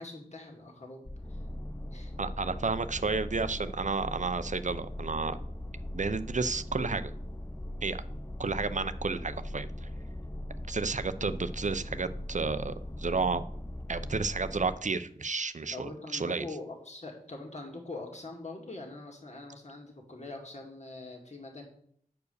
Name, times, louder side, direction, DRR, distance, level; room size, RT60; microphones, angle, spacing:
voice 1, 0.0-1.4 1.9-2.1 15.7-21.6, left 2 dB, 50° left, 0 dB, 2.0 m, -43 dB
sound 1, 1.1-14.8, left 1 dB, 15° left, 0.5 m, -39 dB
voice 2, 2.2-5.4 5.9-7.1 7.8-8.0 8.4-9.9 10.7-13.4 13.9-16.5, right 4 dB, 55° right, 12 dB, 0.6 m, -32 dB
9.3 x 4.7 x 6.7 m, 0.64 s
wide cardioid pair, 60°, 15 cm